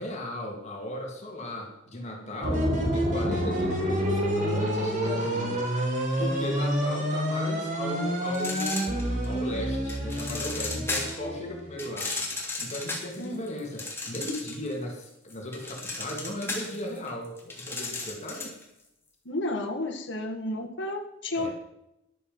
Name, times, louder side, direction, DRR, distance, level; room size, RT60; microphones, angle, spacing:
voice 1, 0.0-5.7 6.2-12.1 12.6-18.5 21.4-21.5, left 1 dB, 35° left, 0 dB, 2.9 m, -36 dB
sound 1, 2.4-12.0, equal, 45° right, 4.3 m, -28 dB
sound 2, 8.3-9.4 9.9-11.3 11.8-14.7 15.0-18.6, left 3 dB, 15° left, 3.4 m, -34 dB
voice 2, 19.3-21.5, left 1 dB, 65° left, 1 dB, 2.0 m, -32 dB
13.5 x 11.5 x 5.5 m, 0.86 s
head